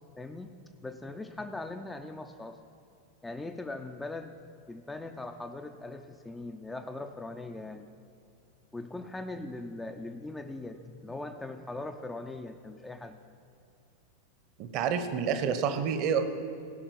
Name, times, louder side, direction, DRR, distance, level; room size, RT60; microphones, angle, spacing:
voice 1, 0.2-0.5 0.8-2.6 3.2-4.4 4.7-7.9 8.7-13.2, left 2 dB, 10° left, 5 dB, 0.5 m, -40 dB
voice 2, 14.6-16.2, right 7 dB, 40° right, 9 dB, 1.0 m, -28 dB
16.5 x 5.7 x 7.1 m, 2.6 s
figure-of-eight pair, 90°, 0 cm